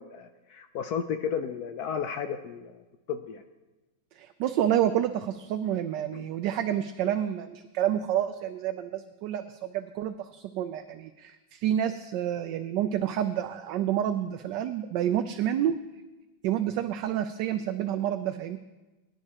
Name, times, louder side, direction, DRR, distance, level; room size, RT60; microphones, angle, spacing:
voice 1, 0.0-2.8 3.1-3.4 6.1-6.2, left 7 dB, 70° left, 7 dB, 1.0 m, -33 dB
voice 2, 4.1-15.8 16.4-18.6, right 10 dB, 75° right, 8 dB, 1.2 m, -29 dB
22.0 x 11.0 x 2.9 m, 1.1 s
omnidirectional pair, 2.1 m